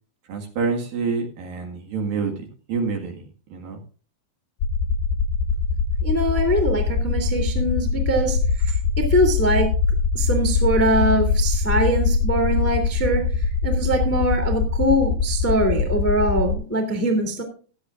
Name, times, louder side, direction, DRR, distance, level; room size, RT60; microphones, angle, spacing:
voice 1, 0.3-2.3 2.7-3.2 3.5-3.8, right 5 dB, 65° right, 3 dB, 3.2 m, -26 dB
sound 1, 4.6-16.5, left 5 dB, 80° left, 3.1 m, -22 dB
voice 2, 6.0-8.4 8.6-9.7 10.1-13.2 13.6-17.4, right 1 dB, 5° left, 4 dB, 1.4 m, -22 dB
16.0 x 12.5 x 2.5 m, 0.38 s
omnidirectional pair, 4.9 m